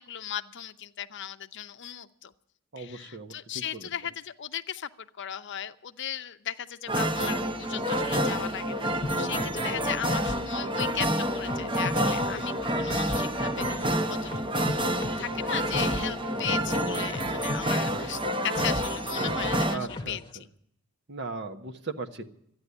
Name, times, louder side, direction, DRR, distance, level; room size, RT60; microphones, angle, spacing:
voice 1, 0.0-2.3 2.8-11.1 11.3-14.9 15.2-20.5, left 10 dB, 55° left, 10 dB, 0.6 m, -37 dB
voice 2, 2.7-3.9 19.7-20.2 21.1-22.3, right 3 dB, 50° right, 5 dB, 1.3 m, -37 dB
sound 1, 6.9-19.8, right 1 dB, 20° right, 1.0 m, -28 dB
sound 2, 9.0-20.3, left 2 dB, 20° left, 1.1 m, -39 dB
13.5 x 9.8 x 9.7 m, 0.73 s
head